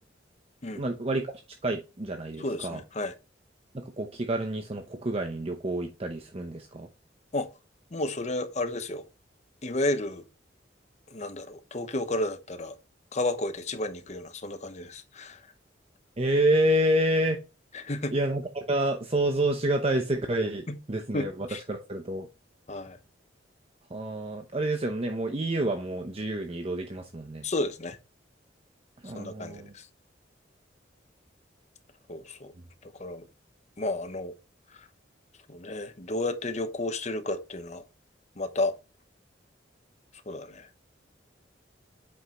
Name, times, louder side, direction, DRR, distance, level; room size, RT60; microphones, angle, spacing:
voice 1, 0.7-1.3 1.6-2.8 3.7-6.9 16.2-17.4 18.1-22.3 23.9-27.5 29.0-29.7, right 1 dB, 35° right, 0.7 m, -28 dB
voice 2, 2.4-3.1 7.3-7.5 7.9-9.1 9.6-10.3 11.1-12.7 13.1-15.4 17.7-18.1 20.7-20.8 21.1-21.6 22.7-23.0 27.4-28.0 29.1-29.9 32.1-32.5 32.8-33.3 33.8-34.3 34.8-34.9 35.5-37.8 38.4-38.7 40.3-40.7, left 2 dB, 40° left, 0.9 m, -32 dB
8.0 x 5.4 x 3.0 m
head